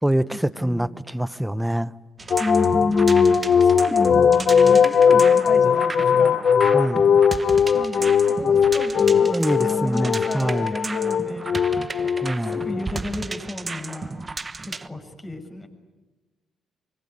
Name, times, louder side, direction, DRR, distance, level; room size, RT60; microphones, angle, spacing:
voice 1, 0.0-1.9 6.7-7.1 9.2-10.7 12.2-12.6, right 1 dB, 5° right, 1.0 m, -25 dB
sound 1, 2.2-14.9, right 3 dB, 25° right, 1.2 m, -34 dB
sound 2, 2.3-13.0, left 7 dB, 55° left, 1.0 m, -19 dB
voice 2, 2.4-6.4 7.7-11.5 12.4-14.2 14.6-15.7, left 2 dB, 25° left, 6.7 m, -31 dB
25.0 x 23.5 x 9.5 m
cardioid pair, 90°, 0 cm